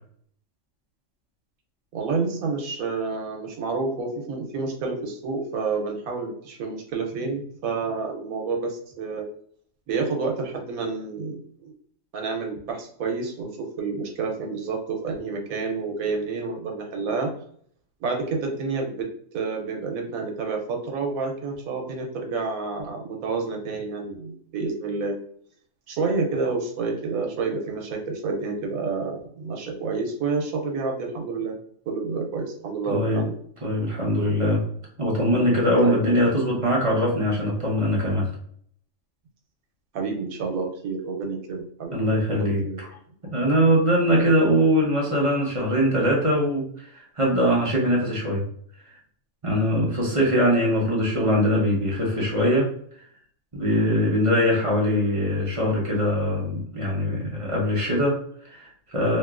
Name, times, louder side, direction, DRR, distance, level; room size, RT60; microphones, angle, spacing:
voice 1, 1.9-9.2 9.9-11.7 12.1-13.5 13.8-17.3 18.0-25.2 25.9-31.5 31.9-33.4 35.8-36.0 39.9-42.0 42.4-42.8 50.0-50.2, right 4 dB, 90° right, 2 dB, 1.1 m, -29 dB
voice 2, 32.9-33.3 33.6-34.7 35.0-38.3 41.9-42.6 43.3-48.4 49.4-52.7 53.0-53.1 53.5-59.2, equal, 35° right, -3 dB, 0.6 m, -22 dB
2.9 x 2.7 x 2.4 m, 0.62 s
omnidirectional pair, 1.4 m